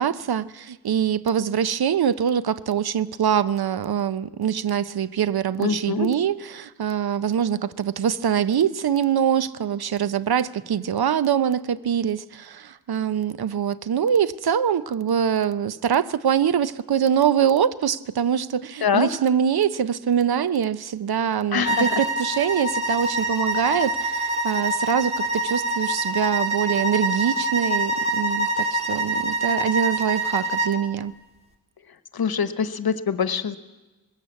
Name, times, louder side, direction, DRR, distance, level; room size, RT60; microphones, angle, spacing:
voice 1, 0.0-31.1, right 8 dB, 75° right, 0.7 m, -24 dB
voice 2, 5.6-6.1 18.8-19.1 21.5-22.0 32.1-33.6, left 7 dB, 70° left, 1.1 m, -24 dB
sound 1, 21.6-30.8, right 1 dB, 15° right, 2.3 m, -25 dB
20.0 x 15.5 x 8.2 m
wide cardioid pair, 125°, 38 cm